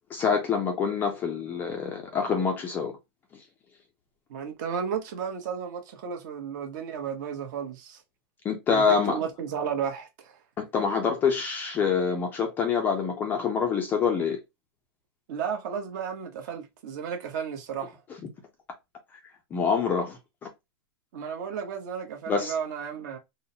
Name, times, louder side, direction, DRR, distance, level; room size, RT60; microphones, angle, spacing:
voice 1, 0.1-2.9 8.4-9.2 10.6-14.4 19.5-20.5 22.3-22.5, left 6 dB, 15° left, 0.4 m, -26 dB
voice 2, 4.3-8.0 8.7-10.3 15.3-18.0 21.1-23.2, right 7 dB, 50° right, 0.8 m, -33 dB
3.8 x 2.0 x 2.6 m
supercardioid pair, 165°, 13 cm